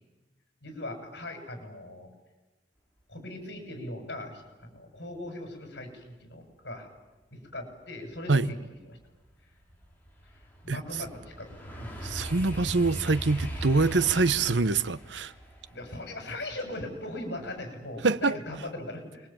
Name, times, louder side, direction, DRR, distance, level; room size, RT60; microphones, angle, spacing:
voice 1, 0.6-2.1 3.1-6.9 7.3-8.6 8.9-9.0 10.6-11.9 15.7-19.3, left 1 dB, 70° left, 7.1 m, -39 dB
sound 1, 8.1-8.2 8.7-17.7 18.1-18.5, right 1 dB, 10° left, 5.6 m, -40 dB
voice 2, 12.0-15.3 18.0-18.4, right 3 dB, 80° right, 0.9 m, -25 dB
29.5 x 21.5 x 8.9 m
head